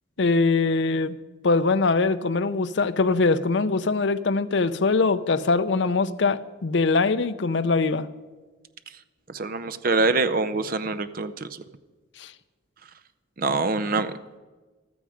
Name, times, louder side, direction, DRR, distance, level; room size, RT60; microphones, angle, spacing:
voice 1, 0.2-1.2 1.4-8.1 12.2-12.3, left 3 dB, 65° left, 12 dB, 0.6 m, -22 dB
voice 2, 9.3-11.6 13.4-14.1, right 3 dB, 45° right, 13 dB, 0.6 m, -25 dB
14.5 x 12.5 x 5.0 m, 1.3 s
head